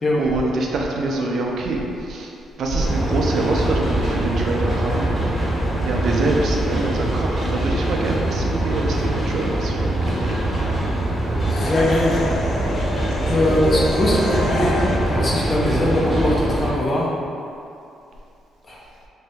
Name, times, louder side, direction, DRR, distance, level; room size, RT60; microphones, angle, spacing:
voice 1, 0.2-5.3 5.8-10.5, right 2 dB, 65° right, -1 dB, 0.4 m, -25 dB
sound 1, 2.8-16.7, right 1 dB, 10° left, 1.0 m, -23 dB
sound 2, 11.4-15.3, left 2 dB, 75° left, 0.3 m, -29 dB
voice 2, 11.5-12.3 13.3-17.1 18.7-18.8, left 1 dB, 35° left, -5 dB, 0.7 m, -21 dB
2.7 x 2.7 x 3.4 m, 2.6 s
cardioid pair, 90°, 0 cm